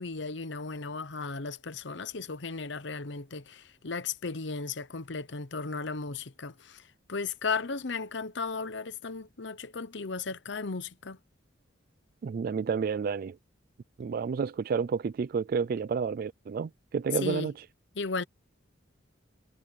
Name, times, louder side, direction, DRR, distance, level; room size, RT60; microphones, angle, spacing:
voice 1, 0.0-11.2 17.1-17.5 17.9-18.2, left 4 dB, 65° left, 0.9 m, -35 dB
voice 2, 12.2-13.4 14.0-17.5, right 6 dB, 50° right, 0.3 m, -30 dB
head